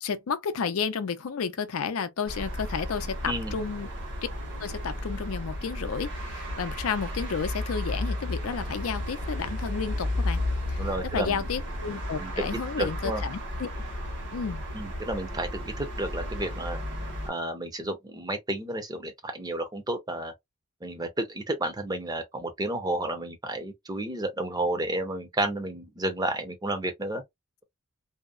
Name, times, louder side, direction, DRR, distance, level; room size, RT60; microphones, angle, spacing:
voice 1, 0.0-3.9 4.6-10.4 10.7-10.9 11.1-13.7 14.3-14.6, left 6 dB, 80° left, 0.5 m, -32 dB
sound 1, 2.3-17.3, left 1 dB, 55° right, 1.2 m, -33 dB
voice 2, 3.3-3.6 10.8-11.5 12.2-12.3 12.8-13.2 14.7-16.8 17.3-20.3 20.8-27.2, right 1 dB, 20° right, 0.6 m, -31 dB
2.7 x 2.0 x 2.4 m
head